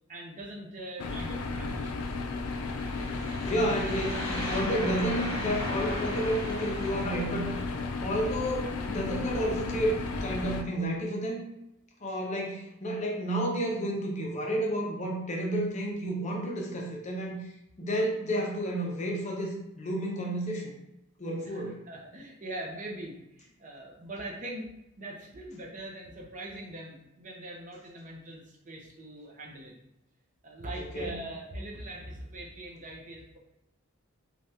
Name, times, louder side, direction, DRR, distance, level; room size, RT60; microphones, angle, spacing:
voice 1, 0.1-2.2 21.4-24.7 25.0-29.7 30.4-33.4, right 1 dB, 35° right, -1 dB, 0.5 m, -42 dB
sound 1, 1.0-10.6, left 3 dB, 85° left, 0.4 m, -34 dB
sound 2, 2.5-7.9, left 1 dB, 65° left, 1.0 m, -37 dB
voice 2, 3.4-7.5 8.0-11.4 12.0-17.5 17.8-20.7 21.2-21.8 30.8-31.2, right 1 dB, 35° left, -1 dB, 0.6 m, -31 dB
3.3 x 2.3 x 2.7 m, 0.86 s
head